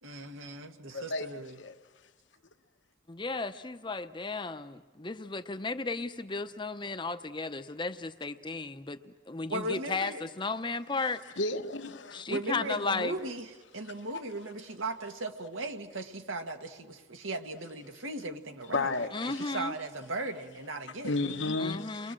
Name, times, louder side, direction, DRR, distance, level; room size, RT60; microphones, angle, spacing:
voice 1, 0.0-1.6 9.5-10.2 12.3-21.2, right 2 dB, 85° right, 1.8 m, -37 dB
voice 2, 0.9-1.3 1.6-1.8 10.0-10.1 11.4-12.3 18.7-19.6 21.0-22.1, left 3 dB, 65° left, 1.1 m, -33 dB
voice 3, 3.1-11.2 12.1-13.1 19.1-19.7 21.6-22.1, left 3 dB, 25° left, 0.7 m, -35 dB
30.0 x 22.5 x 7.6 m
head